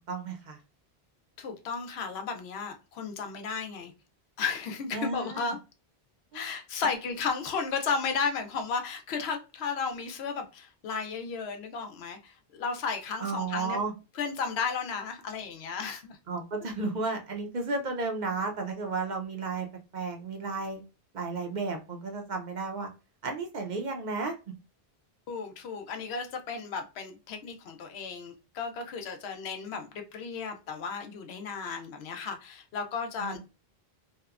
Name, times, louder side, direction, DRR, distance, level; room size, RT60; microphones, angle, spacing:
voice 1, 0.1-0.6 4.9-5.6 6.3-6.4 13.2-13.9 16.3-19.7 19.9-20.8 21.1-22.9 23.2-24.3 33.2-33.4, right 3 dB, 55° right, 0.6 m, -33 dB
voice 2, 1.4-3.9 4.4-5.6 6.3-13.8 14.1-16.2 25.3-33.4, left 5 dB, 90° left, 0.9 m, -34 dB
2.8 x 2.1 x 2.3 m
omnidirectional pair, 1.0 m